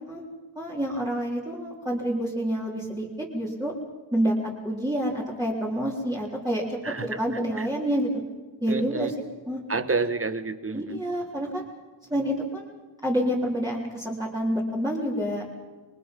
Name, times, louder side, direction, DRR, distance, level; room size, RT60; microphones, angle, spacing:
voice 1, 0.6-3.7 4.1-4.3 4.6-8.2 8.6-9.1 9.5-9.6 10.7-11.7 12.1-15.5, equal, 10° right, -6 dB, 3.8 m, -28 dB
voice 2, 6.8-7.2 7.6-7.7 8.7-9.1 9.7-11.0, right 4 dB, 30° right, 11 dB, 1.4 m, -29 dB
28.0 x 23.0 x 5.4 m, 1.3 s
wide cardioid pair, 140°, 47 cm